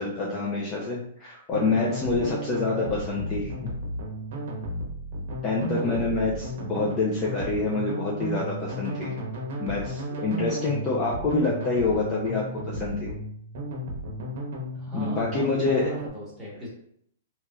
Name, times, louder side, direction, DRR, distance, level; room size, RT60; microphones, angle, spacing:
voice 1, 0.0-3.6 5.4-6.3 6.6-9.2 9.6-13.1 14.9-15.8, left 3 dB, 20° left, -4 dB, 0.4 m, -27 dB
sound 1, 1.5-16.1, right 1 dB, 55° right, 0.8 m, -34 dB
voice 2, 5.5-6.2 14.7-16.7, equal, 5° right, -7 dB, 1.1 m, -38 dB
3.1 x 2.8 x 2.3 m, 0.68 s
hypercardioid pair, 165°, 0 cm